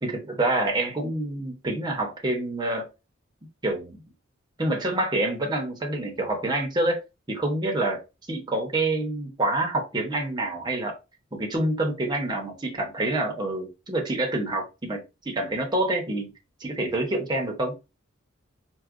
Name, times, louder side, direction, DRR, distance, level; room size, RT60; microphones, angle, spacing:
voice 1, 0.0-2.9 3.6-4.0 4.6-7.0 7.3-8.0 8.3-10.9 11.3-15.0 15.2-16.3 16.6-17.7, right 2 dB, 20° right, 0.8 m, -27 dB
4.5 x 2.2 x 2.5 m
head